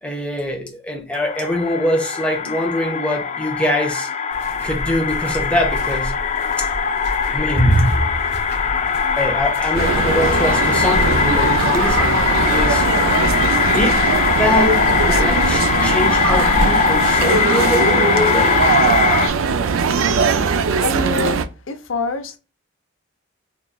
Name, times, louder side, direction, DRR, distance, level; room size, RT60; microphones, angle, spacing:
voice 1, 0.0-4.1 4.6-6.1 6.6-6.7 7.3-8.0 9.2-12.2 12.5-12.8 13.6-18.6, left 1 dB, 5° left, 0.8 m, -22 dB
sound 1, 1.1-19.3, left 6 dB, 35° left, 0.4 m, -20 dB
sound 2, 4.3-17.4, equal, 55° right, 2.0 m, -29 dB
sound 3, 9.7-21.4, right 5 dB, 80° right, 0.4 m, -20 dB
voice 2, 20.7-22.4, left 4 dB, 75° left, 0.7 m, -26 dB
3.9 x 3.2 x 2.3 m
head